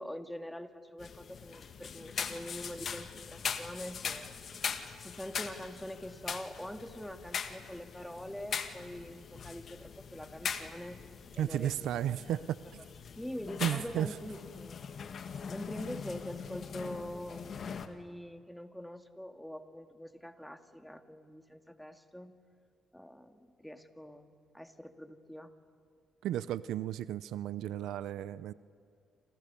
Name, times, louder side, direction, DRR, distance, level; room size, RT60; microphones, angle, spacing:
voice 1, 0.0-4.3 5.0-11.0 11.4-12.4 13.2-14.8 15.5-22.4 22.9-25.5, equal, 5° left, 7 dB, 2.1 m, -44 dB
sound 1, 1.0-17.9, left 6 dB, 55° left, 2.1 m, -41 dB
voice 2, 11.4-12.4 13.6-14.1 26.2-28.5, right 11 dB, 85° right, 17 dB, 0.6 m, -33 dB
28.0 x 28.0 x 7.0 m, 2.3 s
cardioid pair, 90°, 0 cm